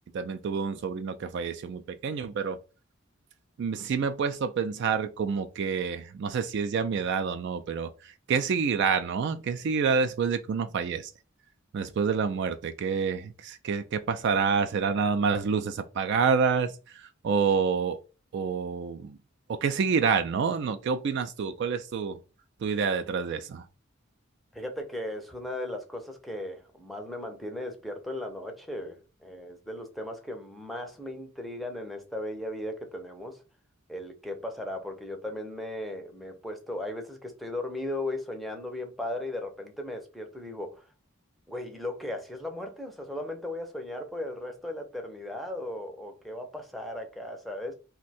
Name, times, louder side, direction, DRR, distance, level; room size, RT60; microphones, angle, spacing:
voice 1, 0.1-2.6 3.6-11.1 11.7-18.0 18.3-19.2 19.5-22.2 22.6-23.6, right 5 dB, 60° right, 0.3 m, -28 dB
voice 2, 24.5-33.4 33.9-40.8 41.5-47.7, left 1 dB, ahead, 0.5 m, -37 dB
2.6 x 2.2 x 4.0 m
head